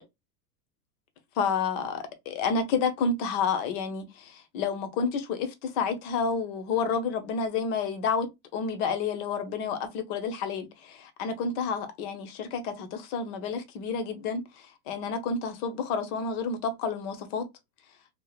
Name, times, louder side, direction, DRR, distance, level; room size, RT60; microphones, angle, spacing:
voice 1, 1.4-17.5, left 5 dB, 55° left, 1.0 m, -30 dB
3.6 x 2.4 x 2.4 m
supercardioid pair, 115°, 46 cm